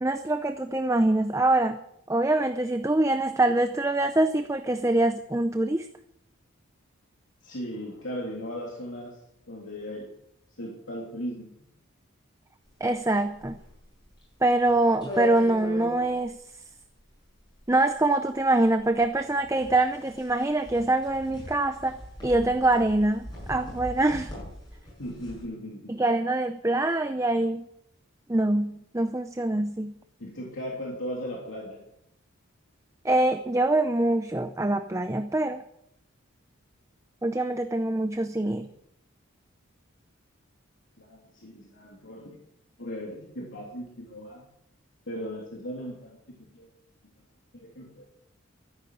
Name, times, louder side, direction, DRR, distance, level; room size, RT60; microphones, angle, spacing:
voice 1, 0.0-1.8 2.1-5.9 12.8-13.6 14.4-16.4 17.7-22.0 22.2-24.3 26.0-27.6 28.3-29.9 33.0-35.6 37.2-38.7, right 2 dB, 15° right, 8 dB, 0.5 m, -24 dB
voice 2, 7.4-9.2 9.5-10.1 10.6-11.6 25.0-25.9 30.2-31.8 41.0-42.4 42.8-44.5 45.1-46.7 47.5-48.1, equal, 65° left, -2 dB, 3.1 m, -37 dB
sound 1, 12.7-25.4, left 2 dB, 20° left, 6.9 m, -40 dB
13.5 x 10.5 x 7.7 m, 0.76 s
head